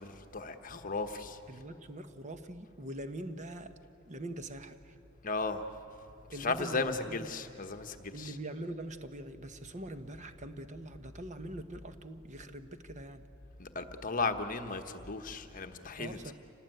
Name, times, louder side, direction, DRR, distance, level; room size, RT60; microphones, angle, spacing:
voice 1, 0.0-1.4 5.2-5.7 6.3-8.4 13.6-16.3, left 3 dB, 40° left, 7 dB, 1.2 m, -35 dB
voice 2, 1.5-3.8 4.1-4.9 6.3-7.3 8.1-13.3 16.0-16.3, right 1 dB, 35° right, 9 dB, 1.1 m, -43 dB
27.5 x 19.0 x 9.2 m, 2.7 s
head